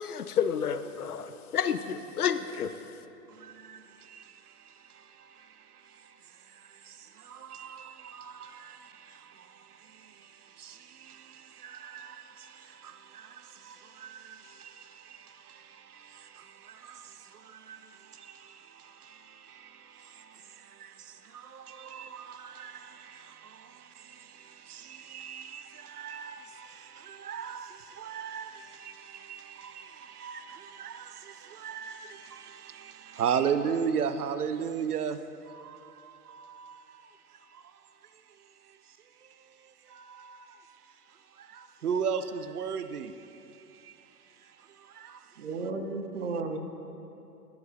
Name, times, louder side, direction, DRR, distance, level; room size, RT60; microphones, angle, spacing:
voice 1, 0.0-2.8, left 8 dB, 75° left, 0.5 m, -30 dB
voice 2, 3.3-4.4 4.7-5.5 5.9-6.1 6.5-35.2 35.5-37.1 37.5-37.6 39.9-40.6 41.4-43.1 43.8-43.9 44.8-45.2, right 7 dB, 70° right, 0.5 m, -38 dB
voice 3, 45.4-46.6, right 3 dB, 50° right, 0.9 m, -33 dB
9.8 x 9.6 x 2.7 m
figure-of-eight pair, 115°, 47 cm